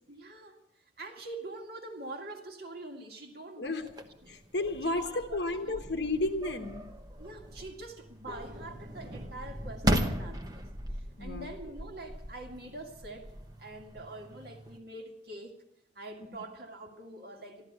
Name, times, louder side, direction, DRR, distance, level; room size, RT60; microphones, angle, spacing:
voice 1, 0.1-0.6 1.0-4.3 4.8-5.8 7.2-10.6 11.2-15.6 16.0-17.7, right 2 dB, 55° right, 3 dB, 2.1 m, -45 dB
sound 1, 3.8-14.8, right 1 dB, 20° right, 1.1 m, -37 dB
voice 2, 4.3-6.9 11.2-11.5, left 2 dB, 70° left, 7 dB, 1.1 m, -32 dB
14.0 x 12.5 x 8.2 m, 0.78 s
head